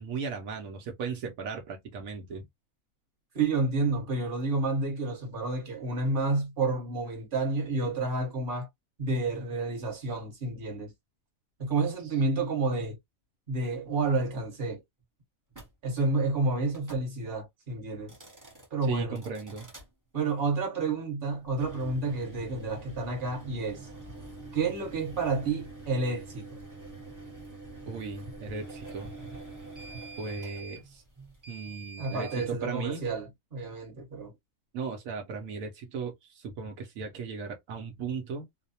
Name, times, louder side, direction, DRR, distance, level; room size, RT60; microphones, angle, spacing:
voice 1, 0.0-2.5 18.9-19.7 27.9-29.1 30.2-31.0 31.5-33.0 34.7-38.5, right 5 dB, 80° right, 1.0 m, -36 dB
voice 2, 3.3-8.7 9.0-10.9 11.6-13.0 13.5-14.8 15.8-18.2 18.7-19.2 20.1-23.9 24.5-26.6 32.0-34.3, right 3 dB, 40° right, 1.3 m, -30 dB
sound 1, 15.5-15.7 16.7-17.1 18.0-18.7 19.1-19.9 21.5-32.5, right 3 dB, 20° right, 0.6 m, -45 dB
2.6 x 2.0 x 2.6 m
omnidirectional pair, 1.4 m